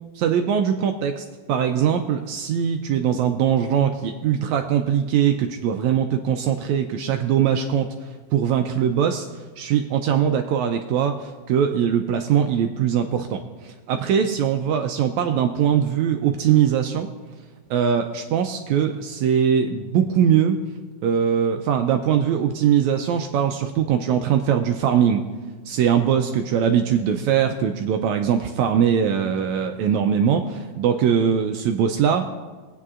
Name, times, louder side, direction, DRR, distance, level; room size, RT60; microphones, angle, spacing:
voice 1, 0.1-9.3 9.6-17.1 17.7-20.6 21.0-25.2 25.6-32.3, right 8 dB, 80° right, 5 dB, 1.7 m, -21 dB
22.5 x 9.2 x 2.4 m, 1.3 s
omnidirectional pair, 3.7 m